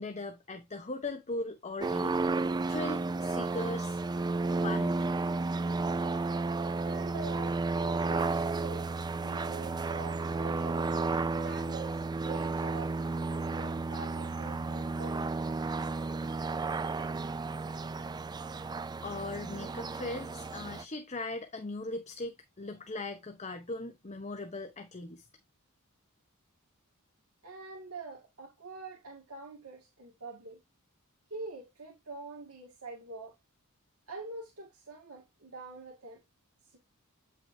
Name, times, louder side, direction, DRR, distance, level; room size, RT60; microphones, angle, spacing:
voice 1, 0.0-4.0 4.5-5.1 19.0-25.3, left 2 dB, 30° left, 0.9 m, -39 dB
sound 1, 1.8-20.8, right 3 dB, 20° right, 0.3 m, -32 dB
voice 2, 6.8-10.9 11.4-13.0 13.3-15.3 27.4-30.6 31.3-33.4 34.1-36.2 36.6-36.8, right 3 dB, 70° right, 1.9 m, -45 dB
8.9 x 5.9 x 2.7 m
head